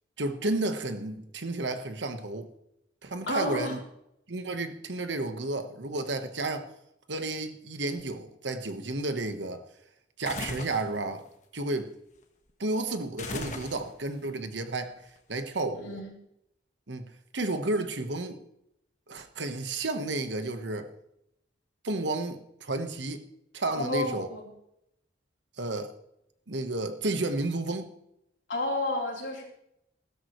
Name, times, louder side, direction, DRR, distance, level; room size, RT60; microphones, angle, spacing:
voice 1, 0.2-2.5 3.0-3.8 4.3-6.7 7.1-9.6 10.2-11.2 11.5-11.9 12.6-16.0 16.9-18.4 19.1-20.9 21.8-23.2 23.5-24.3 25.6-25.9 26.5-27.9, right 2 dB, 75° right, 1.3 m, -32 dB
voice 2, 3.3-3.8 15.7-16.2 23.7-24.5 28.5-29.4, left 2 dB, 85° left, 3.9 m, -31 dB
sound 1, 10.2-10.9 13.2-14.1, left 3 dB, 40° left, 1.4 m, -37 dB
16.0 x 13.5 x 3.2 m
head